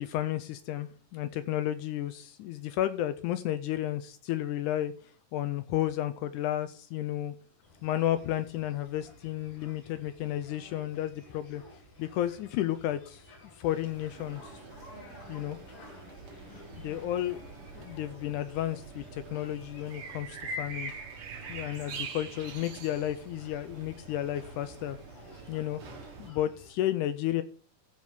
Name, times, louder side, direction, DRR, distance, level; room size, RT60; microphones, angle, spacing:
voice 1, 0.0-4.9 5.3-7.4 7.8-11.6 12.0-13.2 13.6-14.5 15.3-15.6 16.7-17.4 17.8-20.9 21.5-25.0 25.5-25.8 26.2-27.4, left 13 dB, 80° left, 12 dB, 1.8 m, -32 dB
sound 1, 7.6-26.7, left 2 dB, 45° left, 2.8 m, -54 dB
sound 2, 13.6-26.3, right 3 dB, 50° right, 1.9 m, -44 dB
14.5 x 5.0 x 5.4 m, 0.44 s
omnidirectional pair, 4.0 m